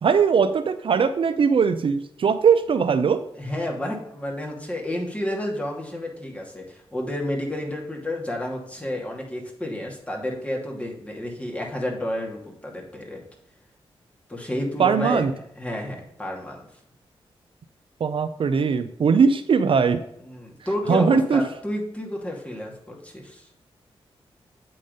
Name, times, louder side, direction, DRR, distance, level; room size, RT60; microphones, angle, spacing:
voice 1, 0.0-3.2 14.8-15.3 18.0-20.0 20.9-21.4, right 6 dB, 60° right, 10 dB, 0.5 m, -20 dB
voice 2, 3.4-13.2 14.3-15.3 15.6-16.6 20.2-23.5, left 1 dB, 10° left, -1 dB, 2.5 m, -30 dB
8.5 x 3.9 x 5.2 m, 0.79 s
cardioid pair, 70°, 10 cm